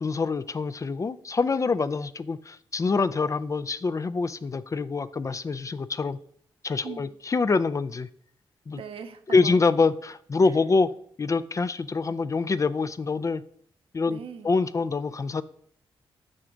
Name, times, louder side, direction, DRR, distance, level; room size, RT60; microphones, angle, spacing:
voice 1, 0.0-6.2 6.6-8.1 8.7-8.8 9.3-10.9 11.2-13.4 13.9-14.2 14.4-15.4, left 4 dB, 35° left, 14 dB, 0.3 m, -25 dB
voice 2, 6.8-7.2 8.7-9.6 10.4-10.6 14.1-14.7, right 7 dB, 70° right, 8 dB, 0.7 m, -41 dB
7.7 x 5.0 x 3.8 m, 0.65 s
cardioid pair, 60°, 10 cm